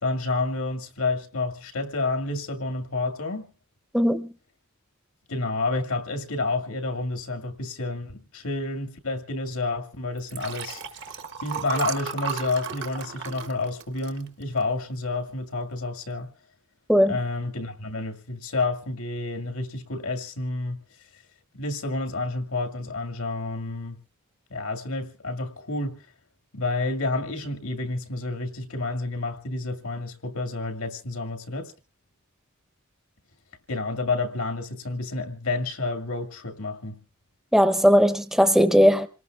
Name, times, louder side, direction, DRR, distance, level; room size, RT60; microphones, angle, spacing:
voice 1, 0.0-3.5 5.3-11.1 11.4-16.3 17.1-20.8 21.5-24.0 24.5-26.0 26.5-31.7 33.7-37.0, left 2 dB, 85° left, 2.1 m, -29 dB
voice 2, 3.9-4.3 16.9-17.1 37.5-39.1, equal, ahead, 0.7 m, -18 dB
Liquid, 10.2-14.8 15.3-15.6 15.8-15.9, right 6 dB, 55° right, 1.2 m, -34 dB
27.5 x 18.5 x 2.4 m
head